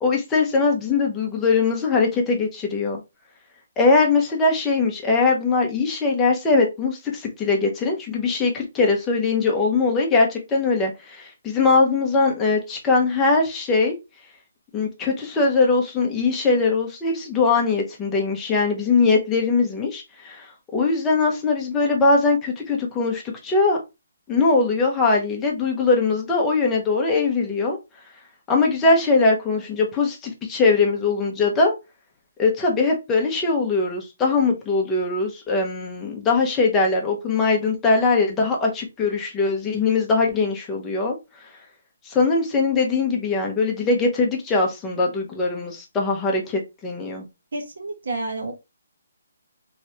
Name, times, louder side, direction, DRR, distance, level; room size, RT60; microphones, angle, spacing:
voice 1, 0.0-3.0 3.8-13.9 14.7-23.8 24.3-27.8 28.5-31.7 32.4-41.2 42.1-47.3, left 3 dB, 10° left, 0.7 m, -21 dB
voice 2, 47.5-48.5, right 2 dB, 60° right, 1.3 m, -29 dB
3.1 x 3.0 x 2.8 m
hypercardioid pair, 175°, 0 cm